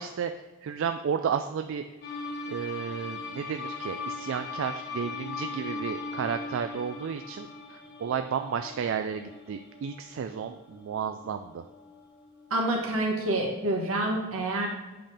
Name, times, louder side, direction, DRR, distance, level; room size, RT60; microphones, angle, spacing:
voice 1, 0.0-1.8 2.5-11.6, right 7 dB, 65° right, 8 dB, 0.3 m, -32 dB
sound 1, 2.0-13.0, left 3 dB, 55° left, 1.4 m, -40 dB
voice 2, 12.5-14.7, right 1 dB, 85° right, 0 dB, 1.6 m, -27 dB
7.8 x 5.2 x 3.4 m, 1.2 s
head